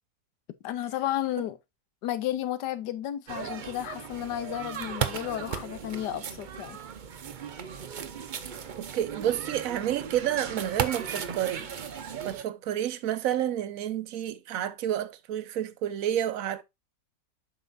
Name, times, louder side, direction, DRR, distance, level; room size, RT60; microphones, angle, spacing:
voice 1, 0.6-1.6 2.0-6.8, left 12 dB, 80° left, 1.3 m, -32 dB
sound 1, 3.3-12.4, right 7 dB, 85° right, 0.4 m, -36 dB
voice 2, 8.8-11.7 12.2-16.6, right 11 dB, 60° right, 1.0 m, -30 dB
7.8 x 5.6 x 2.6 m
omnidirectional pair, 1.8 m